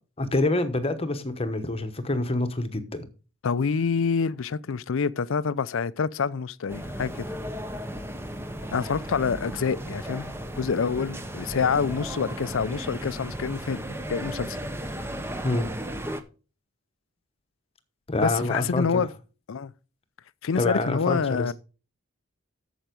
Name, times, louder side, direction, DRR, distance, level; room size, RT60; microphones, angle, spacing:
voice 1, 0.2-3.1 15.4-15.7 18.1-19.0 20.6-21.5, left 2 dB, 25° left, 1.0 m, -26 dB
voice 2, 3.4-7.2 8.7-13.8 14.1-14.6 18.2-19.1 19.5-19.7 20.4-21.5, left 5 dB, 65° left, 0.5 m, -27 dB
sound 1, 6.7-16.2, equal, 10° right, 0.7 m, -35 dB
9.0 x 7.2 x 5.1 m
head